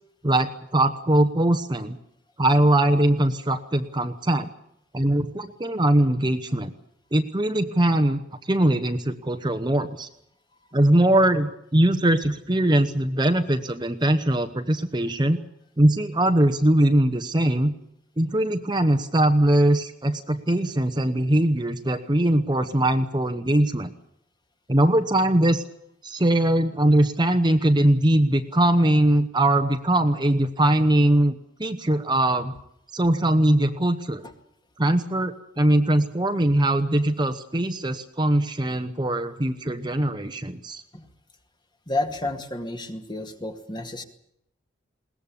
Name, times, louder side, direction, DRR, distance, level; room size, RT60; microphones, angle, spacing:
voice 1, 0.2-2.0 2.4-4.5 4.9-6.7 7.1-10.1 10.7-15.4 15.8-17.7 18.2-23.9 24.7-25.6 26.0-32.5 32.9-34.2 34.8-40.8, right 1 dB, 25° right, 8 dB, 1.0 m, -21 dB
voice 2, 41.9-44.0, left 2 dB, 25° left, 6 dB, 2.1 m, -30 dB
21.5 x 19.0 x 8.5 m, 0.75 s
head